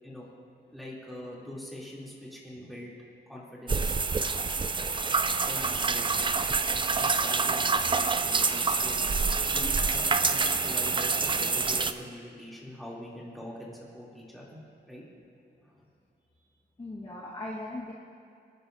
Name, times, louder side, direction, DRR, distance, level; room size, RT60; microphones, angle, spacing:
voice 1, 0.7-2.9 3.3-4.0 5.5-6.4 7.0-9.0 9.5-14.6 14.9-15.0 15.6-15.9, left 1 dB, ahead, -6 dB, 2.8 m, -43 dB
sound 1, 3.7-11.9, right 4 dB, 25° right, 0.4 m, -27 dB
voice 2, 16.8-17.9, left 2 dB, 30° left, -6 dB, 1.4 m, -40 dB
26.5 x 10.5 x 2.6 m, 2.6 s
wide cardioid pair, 155°, 18 cm